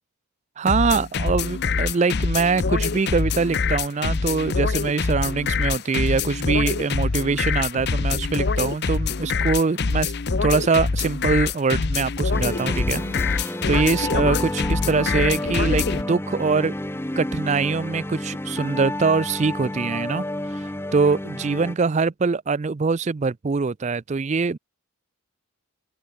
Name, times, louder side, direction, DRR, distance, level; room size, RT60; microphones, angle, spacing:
voice 1, 0.6-10.1 10.4-13.0 13.3-16.7 17.2-20.2 20.5-24.6, right 4 dB, 30° right, 0.4 m, -23 dB
sound 1, 0.7-16.0, left 4 dB, 50° left, 0.7 m, -24 dB
sound 2, 12.3-21.8, left 1 dB, 10° left, 1.0 m, -30 dB
open air
head